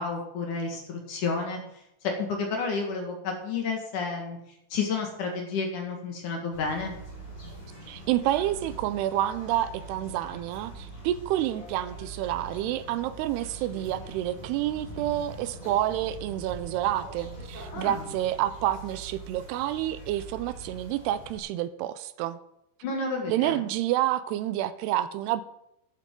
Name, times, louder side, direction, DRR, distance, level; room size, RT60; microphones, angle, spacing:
voice 1, 0.0-1.6 2.0-4.4 4.7-7.0 17.7-18.1 22.8-23.6, left 4 dB, 55° left, 2 dB, 2.8 m, -31 dB
sound 1, 6.5-21.4, right 2 dB, 10° left, 5.1 m, -43 dB
voice 2, 7.9-22.4 23.3-25.4, right 13 dB, 85° right, 13 dB, 2.6 m, -29 dB
11.5 x 11.5 x 3.8 m, 0.80 s
omnidirectional pair, 4.8 m